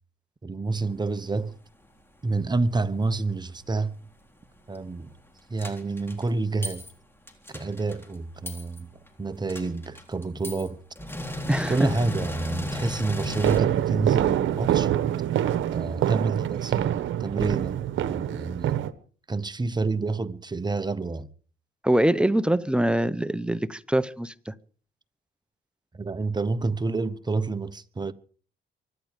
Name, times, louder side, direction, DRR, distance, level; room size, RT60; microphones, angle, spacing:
voice 1, 0.4-1.6 2.2-4.0 4.7-5.1 5.5-6.8 7.5-8.9 9.2-10.8 11.7-14.9 15.7-17.8 18.1-18.8 19.3-21.3 25.9-28.1, right 3 dB, 20° right, 1.1 m, -28 dB
sound 1, 5.6-6.2 6.6-6.9 7.3-8.1 8.5-8.8 9.1-9.2 9.5-10.7 11.0-13.6, left 1 dB, 10° left, 3.6 m, -34 dB
voice 2, 11.5-11.9 21.8-24.5, right 1 dB, 5° right, 0.9 m, -24 dB
sound 2, 13.2-18.9, right 11 dB, 75° right, 1.1 m, -25 dB
24.5 x 10.5 x 5.2 m
cardioid pair, 90°, 20 cm